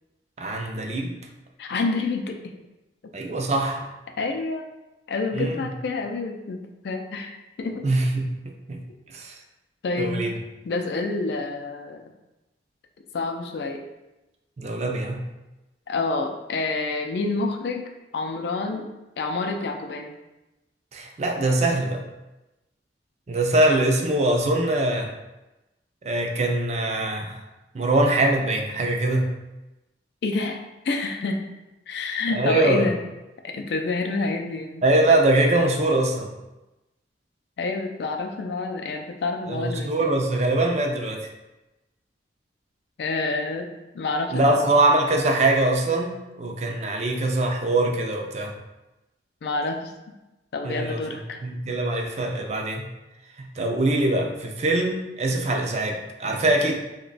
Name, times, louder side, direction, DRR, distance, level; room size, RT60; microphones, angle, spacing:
voice 1, 0.4-1.1 3.1-3.8 5.4-5.7 7.8-8.3 8.7-8.8 9.1-9.3 10.0-10.3 14.6-15.2 20.9-22.0 23.3-25.1 26.0-27.4 27.7-29.3 32.3-32.9 34.8-36.3 39.5-41.3 44.3-48.5 50.6-51.0 51.4-52.8 53.4-56.7, right 2 dB, 40° right, 2 dB, 0.4 m, -23 dB
voice 2, 1.6-2.4 4.2-4.7 5.1-7.9 9.8-10.3 10.6-12.1 13.1-13.8 15.9-18.9 19.2-20.1 30.2-30.6 30.8-31.4 31.9-33.0 33.4-34.8 37.6-40.2 43.0-43.7 43.9-44.7 49.4-49.9 50.5-51.4, left 3 dB, 65° left, 4 dB, 0.4 m, -28 dB
2.9 x 2.2 x 3.9 m, 1.0 s
head